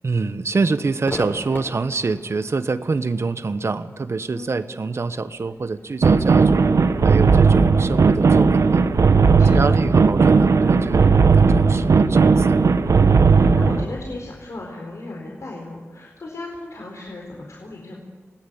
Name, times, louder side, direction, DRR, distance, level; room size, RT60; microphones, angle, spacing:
voice 1, 0.0-6.6 7.0-8.8 9.5-12.6, right 4 dB, 55° right, 12 dB, 1.1 m, -25 dB
Crowd / Fireworks, 1.0-8.4, left 1 dB, 35° left, 5.1 m, -40 dB
sound 1, 6.0-13.8, right 4 dB, 90° right, 1.1 m, -16 dB
voice 2, 9.4-9.9 13.2-18.0, left 2 dB, 70° left, -1 dB, 4.2 m, -36 dB
28.0 x 18.5 x 8.6 m, 1.4 s
wide cardioid pair, 100°, 5 cm